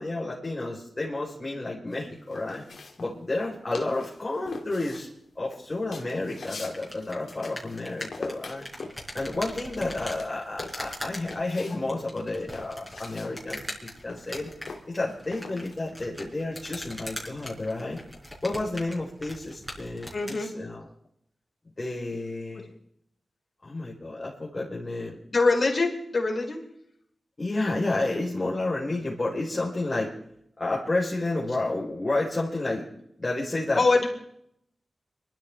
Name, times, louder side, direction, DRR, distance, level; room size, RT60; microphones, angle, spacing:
voice 1, 0.0-2.6 3.0-5.1 5.4-8.7 9.1-14.5 14.9-18.0 18.4-20.9 21.8-22.7 23.6-25.2 27.4-30.1 30.6-32.9 33.2-33.8, left 2 dB, 40° left, -5 dB, 4.1 m, -31 dB
sound 1, 1.9-3.5 3.7-4.2 4.5-7.8 8.1-11.8 12.1-15.7, left 3 dB, 75° left, 2.6 m, -42 dB
sound 2, 6.4-20.4, left 1 dB, 5° left, 4.9 m, -41 dB
voice 2, 20.1-20.5 25.3-26.6 33.8-34.1, left 3 dB, 55° left, 0 dB, 4.4 m, -23 dB
24.5 x 13.5 x 3.5 m, 0.72 s
cardioid pair, 60°, 0 cm